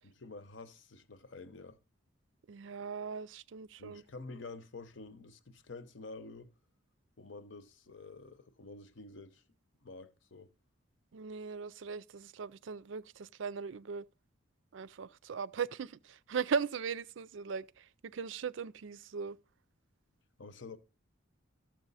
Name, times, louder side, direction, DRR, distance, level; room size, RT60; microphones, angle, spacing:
voice 1, 0.0-1.8 3.8-6.5 7.2-9.4 9.8-10.5 20.4-20.8, left 3 dB, 65° left, 0.9 m, -49 dB
voice 2, 2.5-4.0 11.1-14.1 14.7-19.4, right 6 dB, 70° right, 0.4 m, -38 dB
13.0 x 7.6 x 4.1 m
head